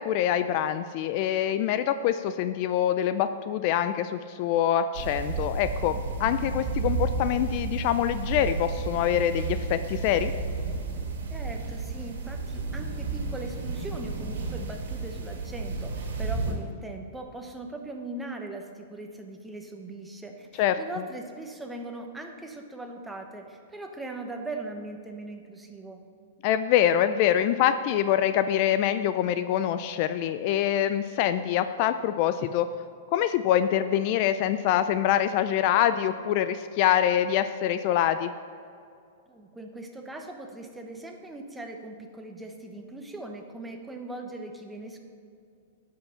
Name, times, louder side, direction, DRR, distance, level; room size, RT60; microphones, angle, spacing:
voice 1, 0.0-10.3 20.6-20.8 26.4-32.7 33.1-38.3, left 10 dB, 45° left, 11 dB, 0.3 m, -25 dB
sound 1, 4.9-16.5, right 4 dB, 85° right, 2.3 m, -32 dB
voice 2, 11.3-26.0 39.3-45.0, right 2 dB, 5° right, 3 dB, 0.9 m, -40 dB
11.5 x 5.7 x 5.7 m, 2.3 s
hypercardioid pair, 145°, 0 cm